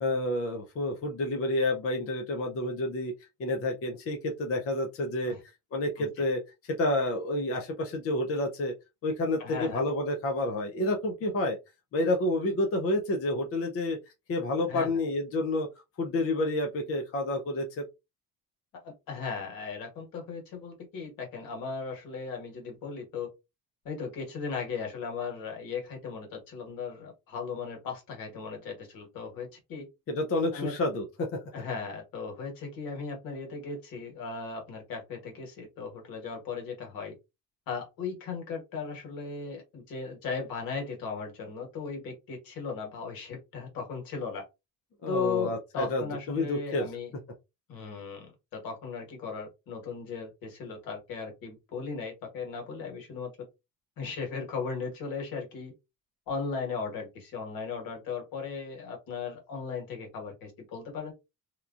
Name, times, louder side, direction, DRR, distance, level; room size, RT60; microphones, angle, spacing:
voice 1, 0.0-3.1 3.4-5.3 5.7-8.7 9.0-11.6 11.9-14.0 14.3-15.7 16.0-17.8 30.1-31.4 45.0-46.0 46.3-46.9, left 1 dB, 40° left, 0.6 m, -29 dB
voice 2, 9.4-9.8 12.5-12.6 14.7-14.9 18.8-23.3 23.8-29.8 30.5-30.7 31.5-37.1 37.7-44.5 45.1-47.1 47.7-53.3 54.0-55.7 56.3-61.1, left 5 dB, 70° left, 1.5 m, -37 dB
2.9 x 2.3 x 2.5 m
cardioid pair, 100°, 36 cm